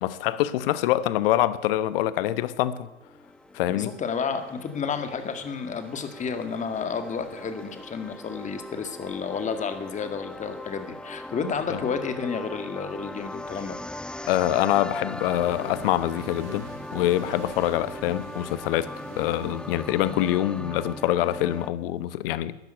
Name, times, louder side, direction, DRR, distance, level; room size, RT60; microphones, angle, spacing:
voice 1, 0.0-2.9 3.5-3.9 11.7-11.8 14.3-18.9 19.2-22.6, left 13 dB, 55° left, 1.0 m, -25 dB
sound 1, 2.7-21.7, left 1 dB, 5° left, 0.5 m, -40 dB
voice 2, 3.7-13.8, left 6 dB, 20° left, 1.9 m, -31 dB
Accelerating revving vroom, 15.1-20.3, right 5 dB, 50° right, 3.5 m, -45 dB
13.5 x 10.5 x 9.0 m
hypercardioid pair, 95°, 33 cm